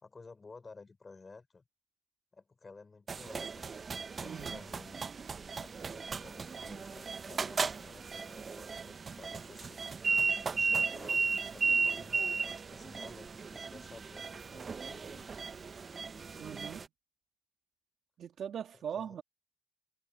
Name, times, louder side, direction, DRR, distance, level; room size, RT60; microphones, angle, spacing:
voice 1, 0.0-1.6 2.3-3.7 4.1-5.0 5.6-9.9 10.2-11.3 11.5-12.4 12.7-15.3 18.9-19.2, left 4 dB, 30° left, 5.3 m, -54 dB
sound 1, 3.1-16.9, right 5 dB, 40° right, 0.9 m, -35 dB
voice 2, 4.2-4.6 16.4-16.9 18.2-19.2, right 8 dB, 60° right, 1.6 m, -40 dB
cardioid pair, 80°, 0 cm